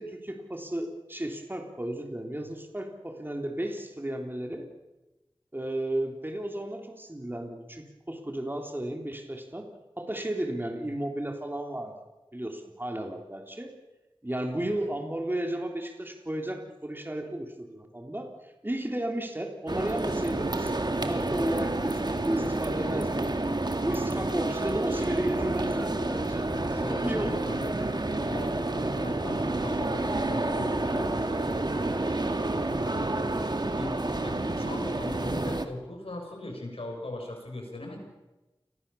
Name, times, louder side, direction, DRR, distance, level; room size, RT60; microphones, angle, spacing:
voice 1, 0.0-4.7 5.5-9.7 10.0-11.9 12.3-13.7 14.2-20.7 21.1-23.2 23.8-26.5 26.9-27.4, right 1 dB, 20° right, 3 dB, 3.5 m, -33 dB
sound 1, 19.7-35.7, right 2 dB, 50° right, 2.1 m, -29 dB
voice 2, 26.5-27.9 28.3-33.2 33.7-34.0 34.2-38.0, left 1 dB, 80° left, 2 dB, 7.1 m, -40 dB
29.0 x 21.5 x 7.1 m, 1.1 s
wide cardioid pair, 60°, 10 cm